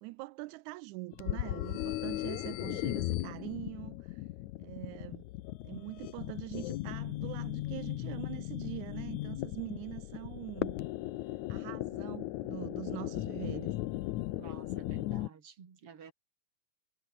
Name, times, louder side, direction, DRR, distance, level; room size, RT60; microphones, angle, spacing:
voice 1, 0.0-4.3 4.6-5.3 5.6-10.8 11.5-13.7, right 21 dB, 85° right, 2.0 m, -43 dB
sound 1, 1.1-15.3, left 16 dB, 80° left, 2.2 m, -37 dB
voice 2, 14.4-16.1, right 7 dB, 50° right, 3.4 m, -52 dB
omnidirectional pair, 3.3 m